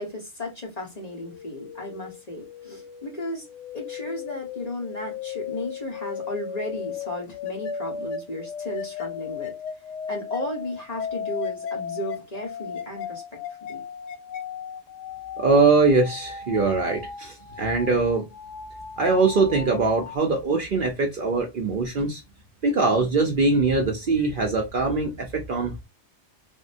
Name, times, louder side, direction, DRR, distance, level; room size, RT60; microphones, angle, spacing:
voice 1, 0.0-3.5 3.7-9.5 10.1-13.4 13.7-13.8, left 1 dB, 35° left, 1.1 m, -34 dB
sound 1, 1.0-20.2, left 7 dB, 90° left, 0.9 m, -36 dB
voice 2, 15.4-18.3 19.0-22.2 22.6-25.7, right 3 dB, 50° right, 0.7 m, -22 dB
3.5 x 2.1 x 2.5 m
omnidirectional pair, 1.2 m